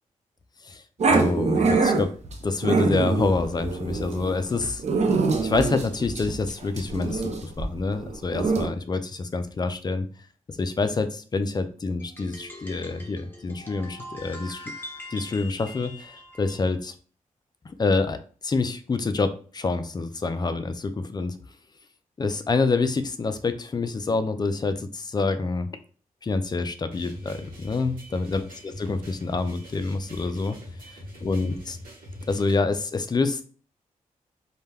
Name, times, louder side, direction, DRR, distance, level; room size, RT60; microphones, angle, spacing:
voice 1, 0.6-2.1 2.4-4.8 5.4-10.1 10.5-14.7 15.1-16.9 17.6-21.4 22.2-25.7 26.2-30.6 31.2-31.8 32.3-33.4, left 3 dB, 30° left, 9 dB, 0.4 m, -27 dB
Growling, 1.0-8.7, right 4 dB, 50° right, 0.5 m, -25 dB
sound 1, 12.0-16.8, left 1 dB, 15° left, 0.7 m, -42 dB
sound 2, 26.9-32.5, left 1 dB, 90° right, 0.9 m, -42 dB
2.2 x 2.1 x 3.3 m, 0.41 s
cardioid pair, 65°, 14 cm